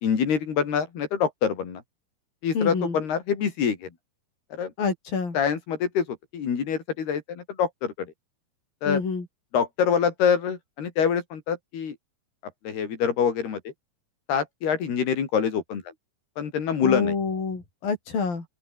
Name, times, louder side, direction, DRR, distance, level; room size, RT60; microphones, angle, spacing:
voice 1, 0.0-1.8 2.4-3.9 4.6-4.7 5.3-6.1 6.3-8.1 8.8-9.0 9.5-12.0 12.7-13.6 14.3-15.8 16.4-17.1, left 7 dB, 85° left, 5.8 m, -25 dB
voice 2, 2.5-3.0 4.8-5.4 8.9-9.3 16.8-18.4, left 5 dB, 65° left, 8.0 m, -27 dB
open air
omnidirectional pair, 4.5 m